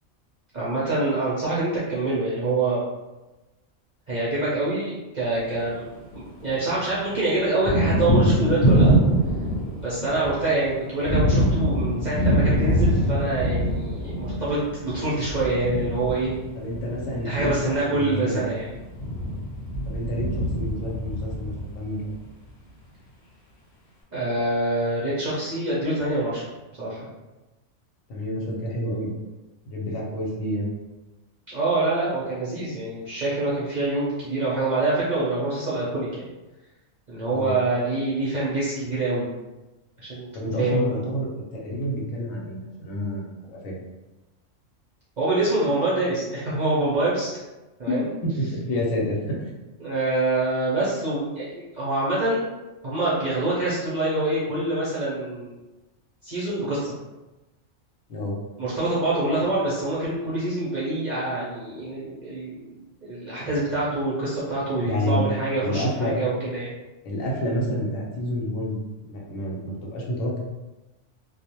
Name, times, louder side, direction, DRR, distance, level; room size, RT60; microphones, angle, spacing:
voice 1, 0.5-2.8 4.1-5.9 6.1-9.0 9.8-16.3 17.2-18.7 24.1-27.1 31.5-36.3 37.1-39.3 40.0-40.3 40.6-40.9 45.2-47.4 47.8-48.0 49.8-52.4 52.8-55.5 56.2-56.9 58.6-66.7, right 2 dB, 50° right, -9 dB, 0.5 m, -25 dB
Thunder, 5.4-6.6 6.9-22.1, equal, 50° left, 0.9 m, -24 dB
voice 2, 16.5-18.4 19.8-22.1 28.1-29.1 29.7-30.7 37.3-37.5 40.3-43.8 47.9-49.5 58.1-58.4 64.8-65.2 65.6-66.2 67.0-68.8 69.1-70.4, equal, 80° left, -2 dB, 1.0 m, -29 dB
2.4 x 2.0 x 2.8 m, 1.1 s
omnidirectional pair, 1.4 m